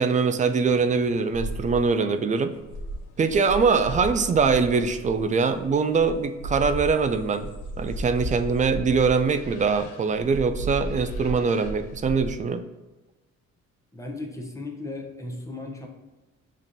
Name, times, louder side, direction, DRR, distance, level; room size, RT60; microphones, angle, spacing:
voice 1, 0.0-2.5 3.2-7.5 7.8-12.6, right 5 dB, 25° right, 9 dB, 0.4 m, -23 dB
sound 1, 0.6-12.4, right 1 dB, 75° left, 0.7 m, -36 dB
voice 2, 13.9-15.9, left 2 dB, 10° left, 0 dB, 0.9 m, -36 dB
7.2 x 2.5 x 2.7 m, 1.1 s
cardioid pair, 90°, 30 cm